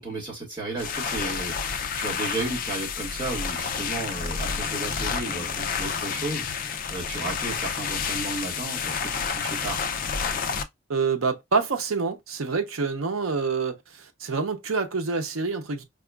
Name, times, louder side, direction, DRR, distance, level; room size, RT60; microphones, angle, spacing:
voice 1, 0.0-9.8, right 2 dB, 20° right, 1.5 m, -34 dB
sound 1, 0.7-10.6, left 6 dB, 45° left, 0.4 m, -30 dB
voice 2, 10.9-15.8, right 4 dB, 90° right, 0.7 m, -27 dB
4.8 x 2.3 x 2.3 m
head